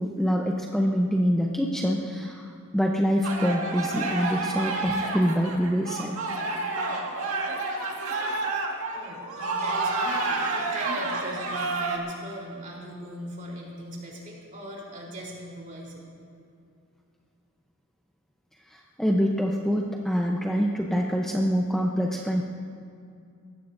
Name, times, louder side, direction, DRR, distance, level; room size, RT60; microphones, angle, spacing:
voice 1, 0.0-6.1 18.7-22.4, equal, ahead, -1 dB, 0.7 m, -25 dB
sound 1, 3.2-12.0, right 3 dB, 75° right, 1.9 m, -29 dB
voice 2, 8.9-16.1, equal, 40° right, -3 dB, 3.5 m, -40 dB
22.5 x 17.0 x 2.6 m, 2.5 s
head